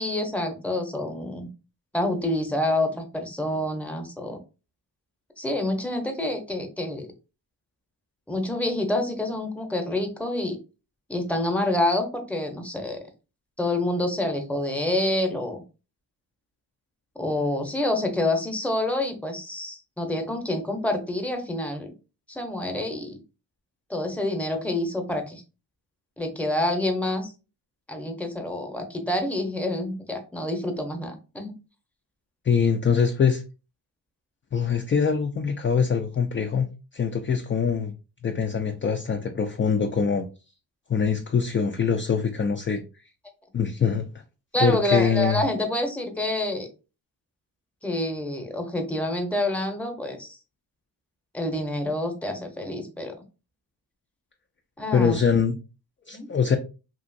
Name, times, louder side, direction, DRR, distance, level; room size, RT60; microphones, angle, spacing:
voice 1, 0.0-1.5 1.9-4.4 5.4-7.1 8.3-10.6 11.1-13.0 13.6-15.6 17.2-21.9 22.3-23.1 23.9-25.4 26.2-27.3 27.9-31.5 44.5-46.7 47.8-50.4 51.3-53.1 54.8-55.2 56.1-56.3, left 1 dB, 5° left, 4 dB, 0.7 m, -27 dB
voice 2, 32.4-33.4 34.5-36.7 36.9-37.9 38.2-40.3 40.9-42.8 43.5-44.1 44.6-45.4 54.9-55.6 56.1-56.6, left 6 dB, 30° left, 5 dB, 0.3 m, -23 dB
2.9 x 2.5 x 2.6 m, 0.31 s
cardioid pair, 80°, 45 cm